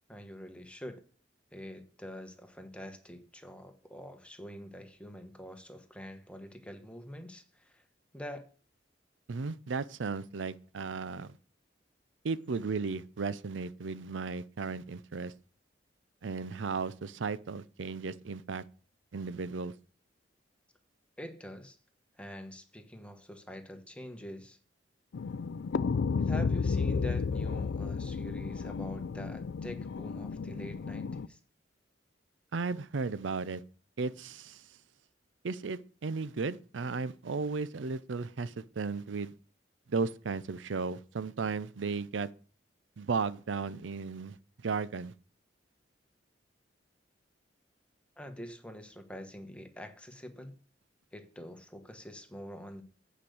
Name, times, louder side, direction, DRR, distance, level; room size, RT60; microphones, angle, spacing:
voice 1, 0.1-1.0 1.5-7.8 8.1-8.5 21.2-21.8 22.1-24.6 26.2-31.4 48.2-50.6 51.1-52.8, equal, 5° left, 1.2 m, -45 dB
voice 2, 9.3-11.3 12.2-15.3 16.2-18.6 19.1-19.7 32.5-33.6 34.0-34.8 35.4-39.3 39.9-42.3 43.0-44.4 44.6-45.1, right 4 dB, 85° right, 0.5 m, -35 dB
sound 1, 25.1-31.2, left 5 dB, 70° left, 0.4 m, -32 dB
8.6 x 5.1 x 7.8 m
head